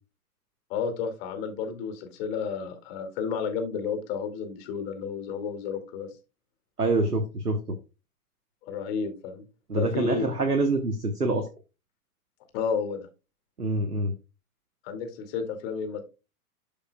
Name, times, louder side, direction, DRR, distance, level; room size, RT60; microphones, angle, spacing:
voice 1, 0.7-6.1 8.6-9.4 9.7-10.3 12.5-13.1 14.8-16.0, left 6 dB, 40° left, 7 dB, 2.3 m, -31 dB
voice 2, 6.8-7.8 9.7-11.5 13.6-14.1, right 2 dB, 90° right, 7 dB, 1.2 m, -26 dB
12.5 x 5.2 x 2.2 m, 0.29 s
figure-of-eight pair, 100°, 45 cm